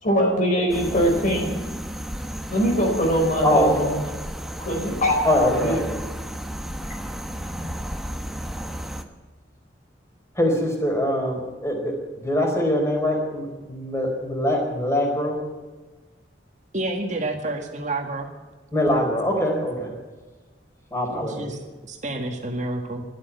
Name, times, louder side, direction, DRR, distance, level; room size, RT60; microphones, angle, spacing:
voice 1, 0.0-1.6 2.5-4.0 4.6-5.1 5.4-5.9, equal, 45° left, 1 dB, 4.5 m, -22 dB
sound 1, 0.7-9.0, equal, ahead, 1.1 m, -33 dB
voice 2, 5.2-5.8 10.3-15.4 18.7-19.9 20.9-21.5, left 1 dB, 15° left, 1 dB, 4.4 m, -23 dB
voice 3, 16.7-18.3 21.1-23.0, right 2 dB, 40° right, 3 dB, 1.9 m, -29 dB
12.5 x 12.0 x 9.6 m, 1.3 s
head